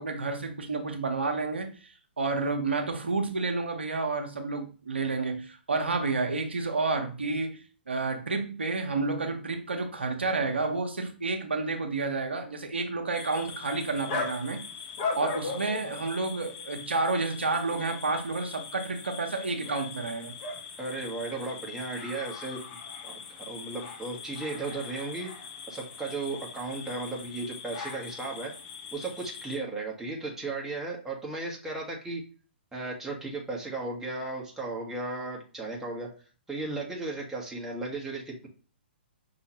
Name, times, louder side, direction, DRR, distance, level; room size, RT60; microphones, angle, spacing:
voice 1, 0.0-7.6 7.9-14.6 15.2-20.3, right 3 dB, 75° right, 1.0 m, -30 dB
sound 1, 13.1-29.6, left 5 dB, 35° left, 1.1 m, -40 dB
voice 2, 20.8-22.6 23.0-25.3 25.7-28.5 28.9-32.2 32.7-36.1 36.5-38.5, right 3 dB, 5° right, 1.3 m, -35 dB
5.6 x 3.1 x 3.0 m
figure-of-eight pair, 120°, 6 cm